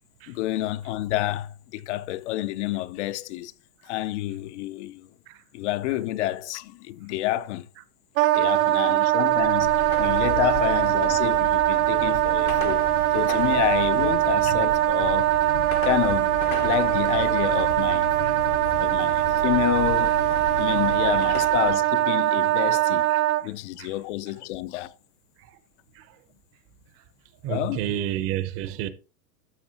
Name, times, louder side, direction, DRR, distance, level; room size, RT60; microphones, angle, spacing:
voice 1, 0.3-3.5 3.8-5.1 5.5-7.7 8.3-12.9 13.1-15.3 15.8-18.1 18.8-20.1 20.6-23.1 23.4-24.9 27.5-27.8, left 15 dB, 55° left, 0.5 m, -29 dB
Wind instrument woodwind instrument, 8.2-23.4, right 16 dB, 70° right, 0.7 m, -22 dB
Car passing by / Traffic noise roadway noise / Engine, 9.3-21.9, left 6 dB, 85° left, 1.6 m, -35 dB
voice 2, 27.4-28.9, right 11 dB, 35° right, 0.7 m, -30 dB
12.5 x 6.7 x 2.8 m
supercardioid pair, 145°, 43 cm